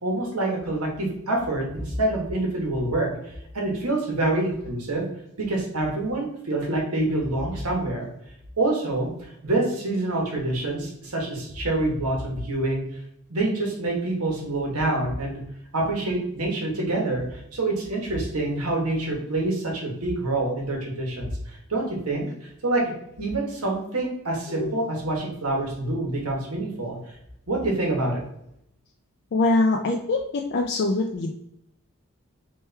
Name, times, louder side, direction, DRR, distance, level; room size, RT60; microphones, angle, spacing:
voice 1, 0.0-5.1 5.5-8.1 8.6-12.8 13.3-15.4 15.7-22.8 23.2-27.0 27.5-28.2, right 2 dB, 90° right, -1 dB, 1.4 m, -26 dB
voice 2, 29.3-30.2 30.5-31.3, left 2 dB, 50° left, 2 dB, 0.3 m, -23 dB
4.3 x 3.2 x 3.4 m, 0.77 s
head